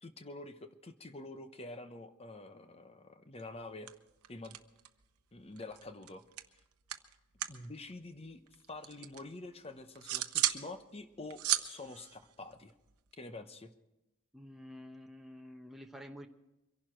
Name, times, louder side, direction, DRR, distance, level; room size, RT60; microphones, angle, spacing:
voice 1, 0.0-3.9 4.3-4.6 5.3-6.2 7.5-12.7 13.2-13.7, left 2 dB, 25° left, 9 dB, 0.9 m, -47 dB
sound 1, 3.4-3.6 3.9-5.1 5.4-7.7 7.9-9.2 9.6-10.7 11.0-13.1, right 13 dB, 85° right, 0.9 m, -36 dB
voice 2, 14.3-16.3, equal, ahead, 2 dB, 0.9 m, -49 dB
24.0 x 11.5 x 4.5 m, 0.95 s
head